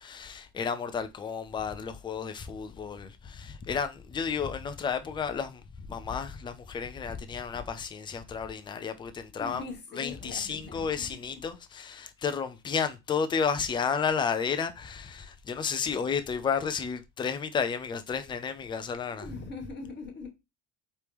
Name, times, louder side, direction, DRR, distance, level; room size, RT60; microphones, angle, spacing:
voice 1, 0.0-9.6 10.0-19.2, left 6 dB, 15° left, 0.3 m, -32 dB
voice 2, 9.4-11.1 19.0-20.3, left 3 dB, 30° left, 1.6 m, -41 dB
4.5 x 3.1 x 3.4 m
cardioid pair, 125°, 35 cm